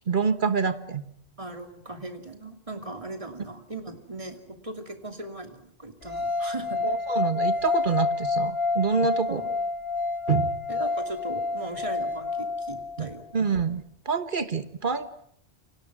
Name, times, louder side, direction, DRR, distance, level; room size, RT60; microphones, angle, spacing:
voice 1, 0.1-1.0 6.8-9.4 10.3-10.5 13.0-15.1, right 6 dB, 50° right, 10 dB, 1.5 m, -27 dB
voice 2, 1.4-6.8 9.3-9.6 10.7-13.2, right 2 dB, 30° right, 5 dB, 2.8 m, -38 dB
sound 1, 6.1-13.2, left 3 dB, 60° left, 2.4 m, -28 dB
29.5 x 24.5 x 6.2 m, 0.70 s
omnidirectional pair, 1.1 m